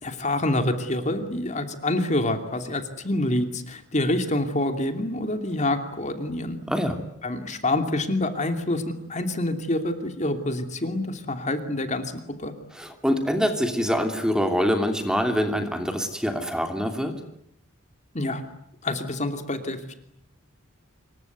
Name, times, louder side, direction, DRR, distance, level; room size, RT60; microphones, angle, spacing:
voice 1, 0.0-6.6 7.2-12.5 18.1-18.4 18.8-19.9, left 1 dB, 35° left, 7 dB, 2.8 m, -27 dB
voice 2, 12.7-17.1, equal, 5° right, 6 dB, 2.8 m, -25 dB
27.0 x 23.5 x 9.4 m, 0.75 s
head